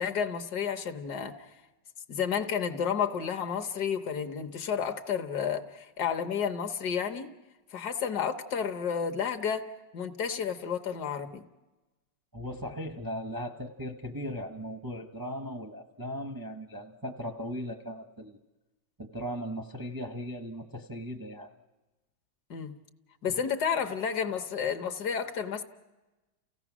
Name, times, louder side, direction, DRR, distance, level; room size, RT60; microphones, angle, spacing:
voice 1, 0.0-1.4 2.1-7.3 7.7-11.4 22.5-22.8 23.2-25.6, left 7 dB, 65° left, 7 dB, 1.5 m, -31 dB
voice 2, 12.3-18.4 19.0-21.5 23.3-23.4, equal, 20° right, 3 dB, 0.5 m, -38 dB
29.5 x 16.5 x 6.0 m, 1.1 s
omnidirectional pair, 1.9 m